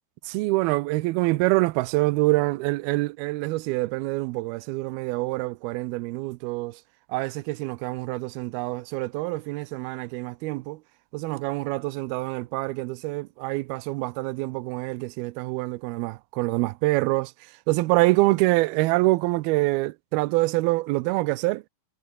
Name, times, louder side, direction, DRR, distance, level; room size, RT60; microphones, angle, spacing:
voice 1, 0.3-6.8 7.1-10.8 11.1-17.3 17.7-21.6, right 21 dB, 80° right, 2.3 m, -25 dB
omnidirectional pair, 4.9 m